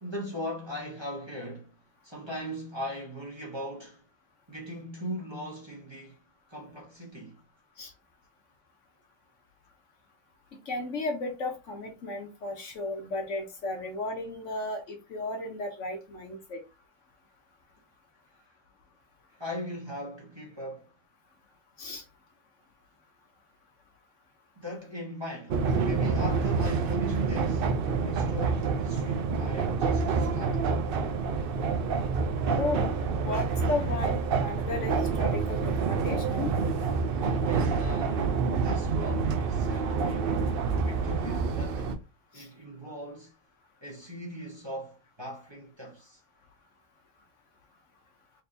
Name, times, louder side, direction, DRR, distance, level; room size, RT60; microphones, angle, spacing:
voice 1, 0.0-1.7 2.0-4.0 4.5-6.2 6.5-7.4 19.3-20.9 24.5-27.8 28.0-30.7 37.3-40.5 40.8-42.0 42.3-43.3 43.8-46.2, equal, 20° right, 1.3 m, -39 dB
voice 2, 10.5-16.6 21.8-22.0 32.6-32.9 33.2-36.5 42.3-42.5, left 2 dB, 60° left, 1.1 m, -34 dB
sound 1, 25.5-42.0, right 5 dB, 65° right, 0.5 m, -27 dB
4.3 x 3.3 x 2.7 m
omnidirectional pair, 1.5 m